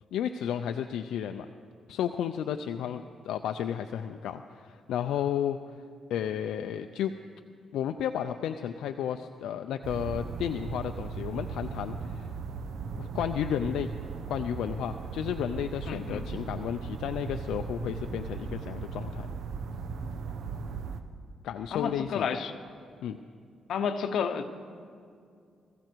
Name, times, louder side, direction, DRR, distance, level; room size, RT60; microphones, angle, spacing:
voice 1, 0.1-1.5 1.9-5.6 6.1-7.1 7.7-12.3 12.9-14.0 14.3-19.3 21.4-22.3 23.0-23.2, left 9 dB, 85° left, 7 dB, 0.5 m, -32 dB
sound 1, 9.8-21.0, right 5 dB, 70° right, 0.9 m, -37 dB
voice 2, 15.8-16.2 21.7-22.6 23.7-24.5, left 6 dB, 70° left, 7 dB, 1.0 m, -31 dB
20.5 x 15.0 x 4.6 m, 2.3 s
cardioid pair, 105°, 0 cm